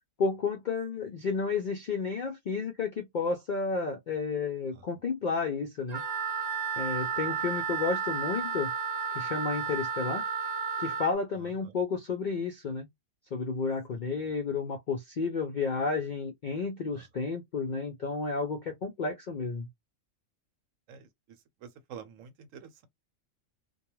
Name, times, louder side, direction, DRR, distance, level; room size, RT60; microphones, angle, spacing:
voice 1, 0.2-6.0 6.8-8.7 9.1-10.2 10.8-12.9 13.3-19.7, left 4 dB, 65° left, 0.4 m, -31 dB
Wind instrument woodwind instrument, 5.9-11.1, right 6 dB, 50° right, 0.5 m, -32 dB
voice 2, 11.3-11.8 13.9-14.0 16.9-17.1 20.9-22.9, right 7 dB, 80° right, 1.0 m, -49 dB
2.3 x 2.3 x 3.0 m
omnidirectional pair, 1.4 m